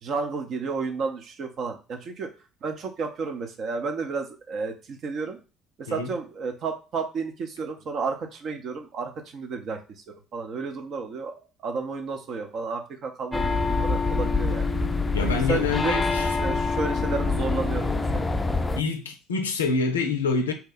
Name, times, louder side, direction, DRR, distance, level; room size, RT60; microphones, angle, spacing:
voice 1, 0.0-2.3 2.6-5.4 5.8-9.8 10.3-11.3 11.6-14.7 15.2-18.3, right 4 dB, 50° right, 0.6 m, -32 dB
sound 1, 13.3-18.8, left 3 dB, 15° left, 0.4 m, -25 dB
voice 2, 15.1-16.4 18.8-20.5, left 4 dB, 80° left, 0.4 m, -26 dB
2.8 x 2.1 x 4.0 m
figure-of-eight pair, 55°, 0 cm